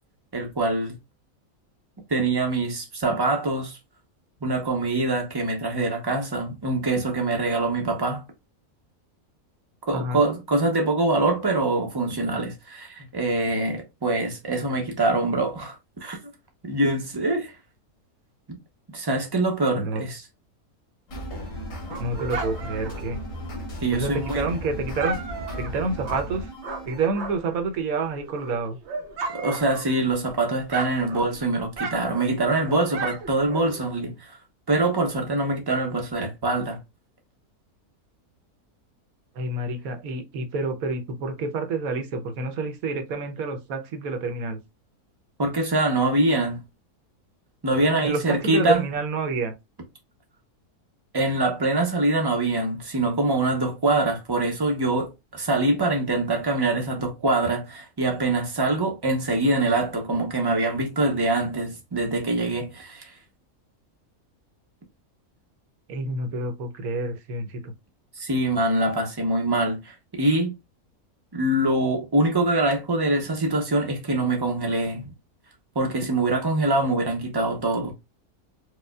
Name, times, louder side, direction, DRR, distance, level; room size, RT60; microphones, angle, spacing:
voice 1, 0.3-1.0 2.1-3.8 4.4-8.2 9.9-15.8 16.0-16.2 16.6-17.5 18.5-18.6 18.9-20.2 23.8-24.5 29.3-34.4 34.7-36.8 45.4-46.6 47.6-48.8 51.1-63.1 68.2-70.5 71.3-75.1 75.7-77.9, right 2 dB, 25° right, 0.6 m, -24 dB
sound 1, 21.1-27.1, equal, 60° left, 1.7 m, -36 dB
Dog, 21.4-27.6 28.0-30.3 30.6-34.0, right 3 dB, 55° right, 0.8 m, -36 dB
voice 2, 22.0-23.2 23.9-25.2 25.6-26.5 26.9-28.8 39.3-44.6 48.0-49.5 65.9-67.7, right 3 dB, 75° right, 1.1 m, -28 dB
4.8 x 2.3 x 2.2 m
omnidirectional pair, 1.6 m